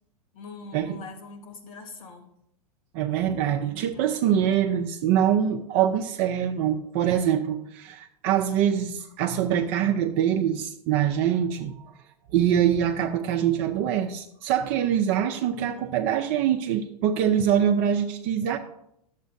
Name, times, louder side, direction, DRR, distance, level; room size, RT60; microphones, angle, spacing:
voice 1, 0.3-2.3 3.9-4.2 15.7-16.0, left 3 dB, 60° left, 4 dB, 1.7 m, -43 dB
voice 2, 2.9-11.9 12.3-18.6, right 9 dB, 40° right, 4 dB, 0.5 m, -24 dB
12.0 x 7.3 x 2.6 m, 0.78 s
hypercardioid pair, 105°, 20 cm